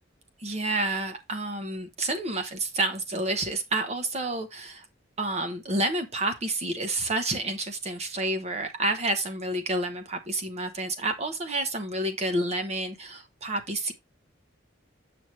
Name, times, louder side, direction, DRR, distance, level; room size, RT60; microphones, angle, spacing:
voice 1, 0.4-4.8 5.2-13.9, right 2 dB, 35° right, 0.9 m, -29 dB
7.9 x 6.0 x 3.1 m
head